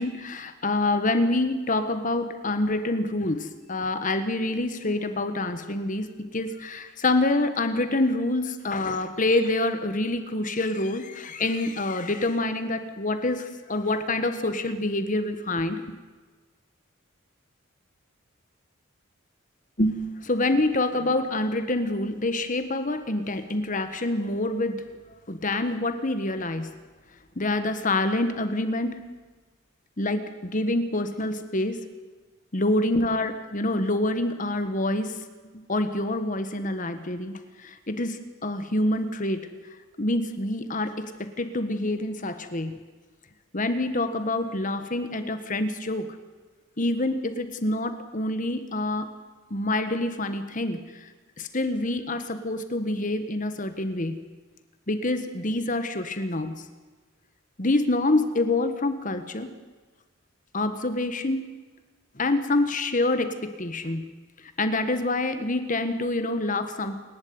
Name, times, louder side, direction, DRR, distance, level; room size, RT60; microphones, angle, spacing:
voice 1, 0.0-15.8 19.8-24.8 25.3-26.7 27.3-29.0 30.0-31.8 32.5-35.2 35.5-39.5 40.0-42.8 43.5-46.1 46.8-49.1 49.5-50.8 51.4-54.2 54.9-56.6 57.6-59.5 60.5-61.4 62.1-64.0 64.6-67.0, left 2 dB, 40° left, 9 dB, 1.4 m, -26 dB
28.0 x 12.0 x 9.6 m, 1.4 s
head